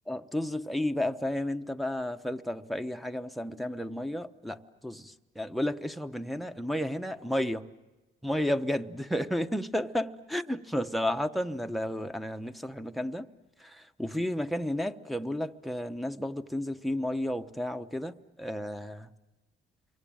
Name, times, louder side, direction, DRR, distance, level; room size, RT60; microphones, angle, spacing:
voice 1, 0.1-7.7 8.2-13.3 13.6-19.1, left 1 dB, ahead, 1.0 m, -32 dB
27.5 x 23.5 x 8.9 m
cardioid pair, 90°, 20 cm